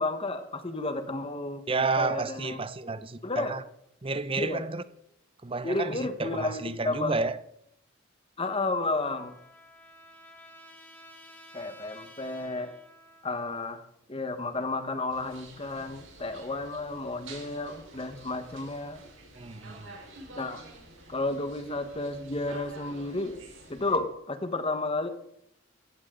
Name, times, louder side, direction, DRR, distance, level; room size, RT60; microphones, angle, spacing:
voice 1, 0.0-2.6 3.2-3.5 4.4-4.6 5.6-7.1 8.4-9.4 11.5-12.7 13.2-13.8 14.1-19.0 20.4-20.6 21.1-23.4 23.7-25.1, left 2 dB, 30° left, 1.3 m, -32 dB
voice 2, 1.7-3.6 4.0-4.8 5.4-7.4 19.4-20.0, right 3 dB, 25° right, 0.7 m, -31 dB
Trumpet, 8.4-13.5, equal, 10° left, 2.1 m, -53 dB
sound 1, 15.1-24.0, right 2 dB, 65° right, 4.4 m, -49 dB
15.5 x 14.5 x 3.8 m
head